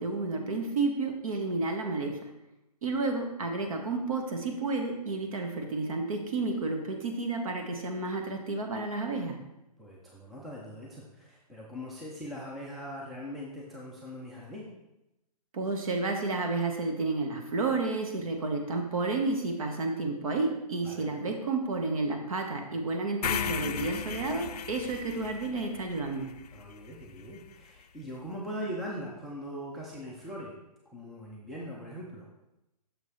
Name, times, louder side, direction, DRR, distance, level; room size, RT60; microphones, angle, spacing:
voice 1, 0.0-2.2 2.8-9.4 15.5-26.3, right 3 dB, 55° right, 4 dB, 1.3 m, -31 dB
voice 2, 9.8-14.7 20.8-21.1 26.5-30.5 30.9-32.3, equal, ahead, -5 dB, 0.4 m, -41 dB
sound 1, 23.2-27.4, left 8 dB, 70° left, 0.4 m, -36 dB
6.4 x 4.7 x 4.1 m, 0.93 s
hypercardioid pair, 145°, 21 cm